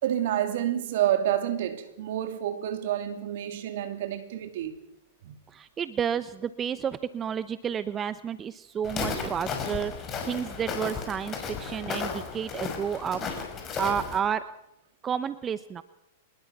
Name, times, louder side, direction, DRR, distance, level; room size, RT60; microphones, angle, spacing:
voice 1, 0.0-4.8 5.2-5.4, right 11 dB, 60° right, 2.9 m, -28 dB
voice 2, 5.5-9.9 10.2-13.3 13.8-14.4 15.0-15.8, right 8 dB, 25° right, 0.8 m, -31 dB
Walk footsteps, 8.8-14.2, left 5 dB, 30° left, 5.6 m, -34 dB
25.0 x 20.5 x 6.1 m
hypercardioid pair, 110°, 0 cm